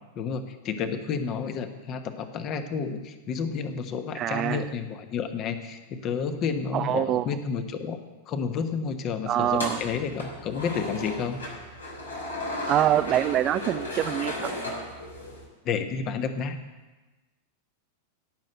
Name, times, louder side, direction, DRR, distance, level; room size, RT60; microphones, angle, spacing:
voice 1, 0.1-8.0 8.3-11.4 15.6-16.6, left 6 dB, 35° left, 8 dB, 1.3 m, -30 dB
voice 2, 4.2-4.7 6.7-7.2 9.3-9.8 12.7-14.5, right 12 dB, 35° right, 10 dB, 0.4 m, -25 dB
sound 1, 9.4-15.5, left 1 dB, 80° left, 3.1 m, -35 dB
16.5 x 6.6 x 7.7 m, 1.2 s
figure-of-eight pair, 90°, 0 cm